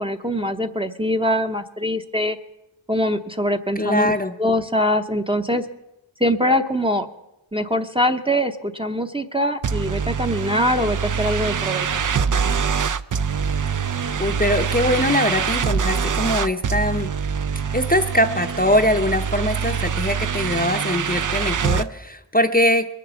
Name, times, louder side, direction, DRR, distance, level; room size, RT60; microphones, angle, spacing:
voice 1, 0.0-2.4 2.9-4.1 4.4-5.7 6.2-7.1 7.5-11.9, equal, 10° right, 4 dB, 0.8 m, -23 dB
voice 2, 3.8-4.3 14.2-17.1 17.7-22.9, left 1 dB, 20° left, 6 dB, 0.8 m, -21 dB
sound 1, 9.6-21.9, right 6 dB, 45° right, 0.5 m, -24 dB
21.5 x 7.7 x 6.9 m, 0.91 s
wide cardioid pair, 50°, 46 cm